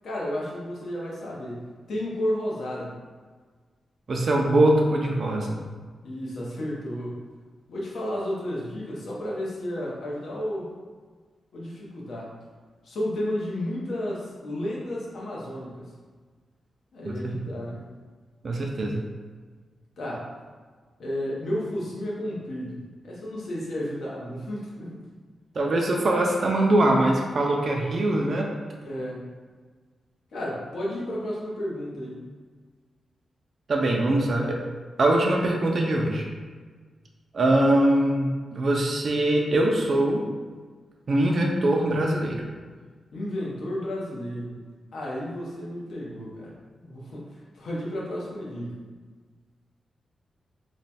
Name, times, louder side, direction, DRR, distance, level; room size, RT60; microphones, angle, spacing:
voice 1, 0.0-2.9 6.0-7.2 7.7-10.7 11.5-12.3 12.8-15.9 16.9-17.8 20.0-20.3 21.0-25.0 28.8-29.3 30.3-32.2 43.1-44.6 44.9-48.8, left 1 dB, 75° left, -5 dB, 0.9 m, -32 dB
voice 2, 4.1-5.6 17.1-17.2 18.4-19.0 25.6-28.5 33.7-34.6 35.0-36.2 37.3-40.2 41.1-42.4, right 1 dB, 45° right, 0 dB, 0.4 m, -22 dB
3.1 x 2.2 x 4.1 m, 1.5 s
wide cardioid pair, 155°, 0 cm